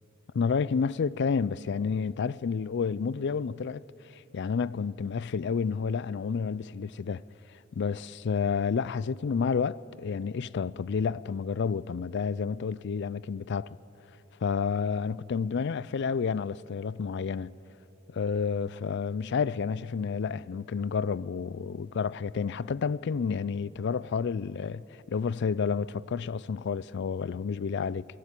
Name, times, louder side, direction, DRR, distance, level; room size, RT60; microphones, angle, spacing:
voice 1, 0.3-3.8 4.1-7.2 7.8-13.7 14.4-17.5 18.1-24.8 25.1-28.0, left 5 dB, 55° left, 0.4 m, -30 dB
23.5 x 12.5 x 9.0 m
head